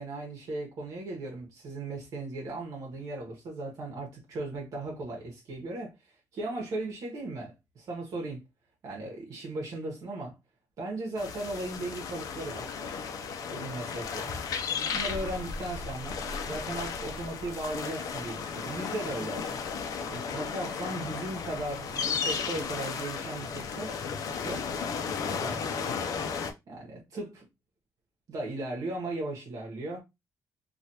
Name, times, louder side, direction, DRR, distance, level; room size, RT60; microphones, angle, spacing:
voice 1, 0.0-5.9 6.3-8.4 8.8-10.4 10.8-12.8 13.4-14.4 14.9-19.6 20.0-24.0 24.4-24.8 25.2-25.7 26.7-27.5 28.3-30.0, right 2 dB, 65° right, 1.1 m, -37 dB
sound 1, 11.2-26.5, left 6 dB, 70° left, 0.6 m, -34 dB
3.2 x 2.4 x 2.8 m
cardioid pair, 135°, 6 cm